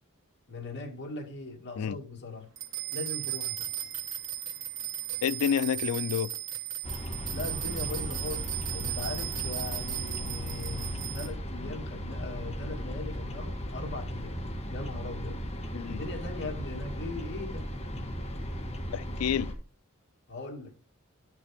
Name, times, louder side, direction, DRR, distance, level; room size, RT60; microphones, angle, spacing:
voice 1, 0.5-2.5 2.9-3.7 7.3-14.4 14.7-15.4 16.0-17.7 20.3-20.7, left 2 dB, 55° left, 2.1 m, -40 dB
sound 1, 2.6-11.3, right 12 dB, 65° right, 1.3 m, -36 dB
voice 2, 5.2-6.3 15.7-16.0 18.9-19.5, left 8 dB, 80° left, 0.4 m, -29 dB
sound 2, 6.8-19.5, equal, 30° left, 1.4 m, -36 dB
10.5 x 6.0 x 3.4 m
head